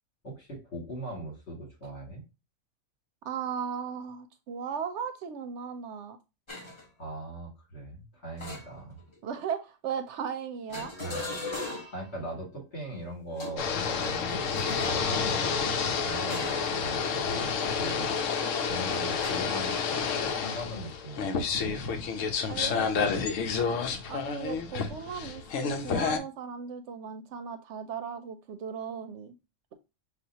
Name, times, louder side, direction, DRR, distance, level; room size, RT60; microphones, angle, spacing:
voice 1, 0.2-2.2 7.0-9.0 11.0-11.3 11.9-14.5 14.8-18.2 18.7-22.1 22.5-23.2 23.7-23.8, right 1 dB, 60° left, -2 dB, 2.4 m, -40 dB
voice 2, 3.2-6.2 9.2-10.9 18.6-18.9 22.5-22.9 24.0-29.3, right 7 dB, 70° right, 9 dB, 0.8 m, -37 dB
sound 1, 6.5-6.8 8.4-9.1 10.7-12.1 13.3-15.0 16.3-16.8 17.1-17.4 19.2-19.3, left 2 dB, 25° left, 1.0 m, -39 dB
sound 2, 13.6-26.2, left 5 dB, 85° left, 1.0 m, -29 dB
6.6 x 2.4 x 2.8 m, 0.27 s
omnidirectional pair, 1.3 m